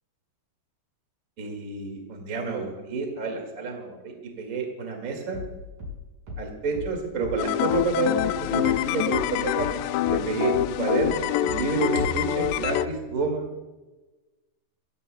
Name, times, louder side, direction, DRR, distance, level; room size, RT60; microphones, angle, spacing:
voice 1, 1.4-5.4 6.4-9.8 10.1-13.5, right 4 dB, 30° right, 2 dB, 1.6 m, -29 dB
sound 1, 5.3-10.3 10.5-12.8, left 3 dB, 45° right, 6.6 m, -38 dB
sound 2, 7.4-12.9, left 14 dB, 85° left, 2.7 m, -26 dB
26.5 x 15.5 x 2.3 m, 1.2 s
omnidirectional pair, 4.8 m